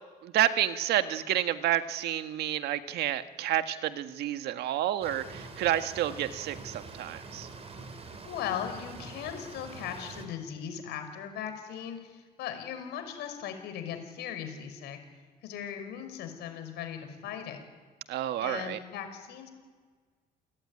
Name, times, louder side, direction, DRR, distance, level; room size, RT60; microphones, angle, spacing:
voice 1, 0.2-7.5 18.1-18.8, right 12 dB, 80° right, 9 dB, 1.7 m, -29 dB
sound 1, 5.0-10.3, right 4 dB, 35° right, 4.7 m, -45 dB
voice 2, 8.3-15.0 15.4-17.6 18.4-19.5, left 9 dB, 80° left, 7 dB, 5.6 m, -38 dB
29.5 x 20.0 x 9.9 m, 1.5 s
cardioid pair, 110°, 17 cm